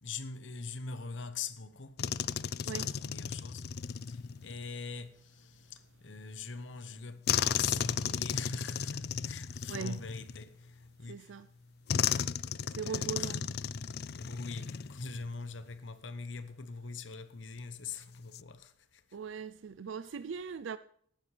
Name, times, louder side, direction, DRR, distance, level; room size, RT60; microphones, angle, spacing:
voice 1, 0.0-1.9 2.6-3.6 4.1-10.6 11.0-11.3 12.8-13.4 14.1-18.7 20.0-20.1, left 4 dB, 85° left, 1.1 m, -42 dB
sound 1, 2.0-4.7 7.3-10.8 11.9-15.3 15.5-15.7 18.1-18.4, left 8 dB, 55° left, 0.4 m, -34 dB
voice 2, 9.7-10.0 11.0-11.5 12.7-13.5 19.1-20.8, right 6 dB, 90° right, 0.5 m, -40 dB
14.5 x 12.0 x 3.3 m
head